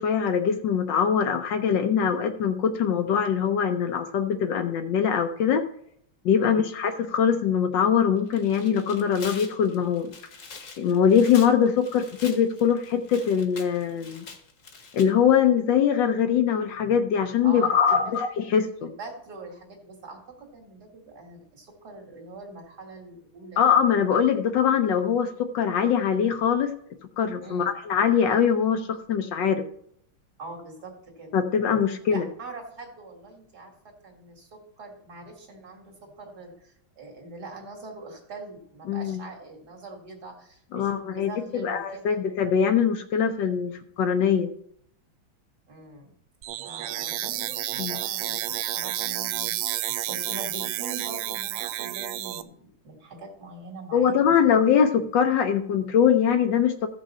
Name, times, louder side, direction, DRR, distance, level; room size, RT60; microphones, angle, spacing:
voice 1, 0.0-5.6 6.2-10.1 10.8-14.2 14.9-18.9 23.6-26.7 27.2-29.6 31.3-32.3 38.9-39.2 40.7-44.5 47.8-48.0 53.9-56.9, left 7 dB, 70° left, 7 dB, 1.3 m, -22 dB
Tearing, 8.2-15.1, left 4 dB, 45° left, 1.3 m, -44 dB
voice 2, 17.4-18.1 18.8-23.6 27.4-27.7 30.4-31.4 32.1-42.2 45.7-46.1 46.6-54.5, right 3 dB, 50° right, 0 dB, 2.4 m, -43 dB
sound 1, 46.4-52.4, right 13 dB, 80° right, 1.3 m, -30 dB
14.5 x 6.2 x 4.2 m, 0.69 s
omnidirectional pair, 2.2 m